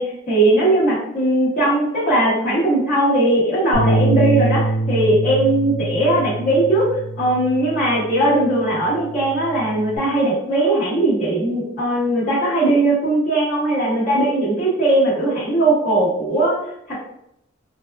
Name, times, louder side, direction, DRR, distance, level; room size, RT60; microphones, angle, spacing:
voice 1, 0.0-6.9 7.2-16.6 16.9-17.0, right 1 dB, 40° left, -9 dB, 1.4 m, -19 dB
Bass guitar, 3.7-8.2 8.6-10.0, right 2 dB, 85° left, 1.4 m, -24 dB
3.9 x 2.3 x 2.3 m, 0.75 s
head